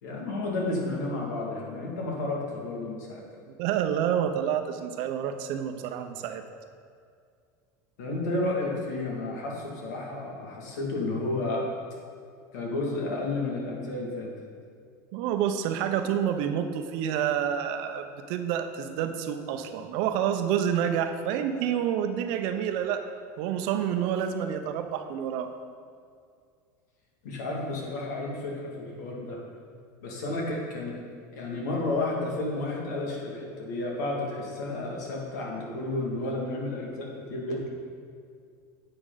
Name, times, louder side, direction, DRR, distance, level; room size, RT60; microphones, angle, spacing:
voice 1, 0.0-3.2 8.0-11.6 12.5-14.3 27.2-29.4 30.0-30.9 31.3-37.7, left 2 dB, 85° left, -2 dB, 2.3 m, -31 dB
voice 2, 3.6-6.4 15.1-23.0 23.4-25.5, right 9 dB, 60° right, 7 dB, 0.8 m, -28 dB
9.9 x 8.0 x 4.0 m, 2.2 s
supercardioid pair, 135°, 9 cm